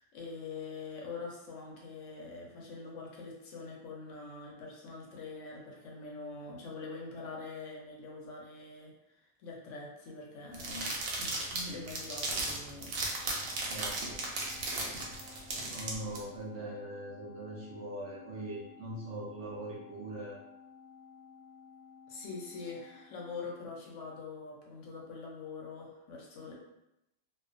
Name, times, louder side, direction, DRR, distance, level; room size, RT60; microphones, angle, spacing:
voice 1, 0.0-13.6 22.1-26.5, left 4 dB, 70° left, -2 dB, 0.9 m, -44 dB
sound 1, 10.5-16.2, right 2 dB, 90° right, 1.0 m, -36 dB
Organ, 12.8-24.1, left 6 dB, 30° right, 0.8 m, -56 dB
voice 2, 13.7-14.2 15.7-20.4, right 1 dB, 65° right, -3 dB, 0.8 m, -41 dB
2.3 x 2.3 x 2.4 m, 0.87 s
omnidirectional pair, 1.4 m